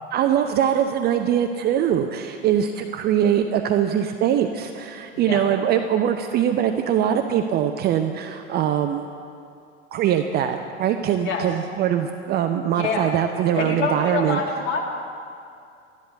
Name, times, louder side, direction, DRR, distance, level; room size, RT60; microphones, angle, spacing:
voice 1, 0.1-9.1 9.9-14.4, right 9 dB, 25° right, 6 dB, 0.6 m, -22 dB
voice 2, 12.7-13.1 13.5-14.8, left 4 dB, 35° left, 0 dB, 2.6 m, -26 dB
12.5 x 10.5 x 7.9 m, 2.5 s
figure-of-eight pair, 85°, 37 cm